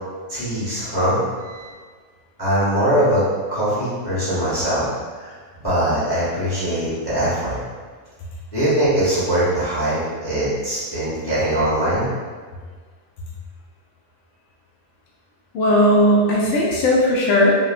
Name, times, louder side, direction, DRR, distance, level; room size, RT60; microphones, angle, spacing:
voice 1, 0.3-1.2 1.4-1.7 2.4-3.2 3.5-4.9 5.2-5.3 5.6-7.6 8.5-12.1, right 1 dB, 20° left, -11 dB, 0.7 m, -21 dB
voice 2, 15.5-17.5, left 1 dB, 70° left, -4 dB, 0.9 m, -16 dB
3.3 x 2.1 x 2.4 m, 1.5 s
omnidirectional pair, 1.5 m